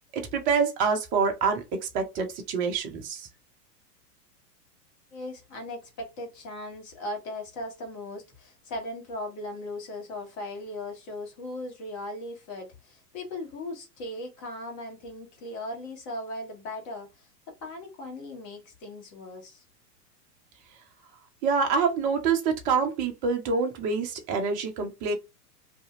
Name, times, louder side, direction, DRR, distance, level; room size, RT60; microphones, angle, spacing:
voice 1, 0.1-3.3 21.4-25.1, right 5 dB, 20° right, 0.4 m, -26 dB
voice 2, 5.1-19.6, left 1 dB, 35° left, 1.4 m, -38 dB
2.7 x 2.5 x 2.4 m
hypercardioid pair, 105°, 48 cm